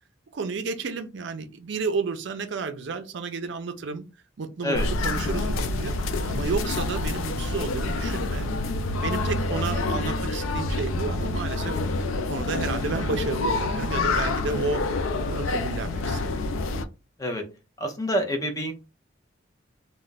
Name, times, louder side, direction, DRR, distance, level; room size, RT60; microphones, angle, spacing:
voice 1, 0.3-4.1 4.4-4.8 5.0-5.9 6.3-8.5 9.0-11.7 12.1-14.9 15.2-16.3, right 4 dB, 60° right, 0.4 m, -31 dB
sound 1, 4.7-16.8, left 2 dB, 80° left, 0.4 m, -27 dB
voice 2, 12.5-12.9 17.2-17.4 17.8-18.7, equal, 15° left, 0.5 m, -28 dB
2.3 x 2.1 x 3.9 m
head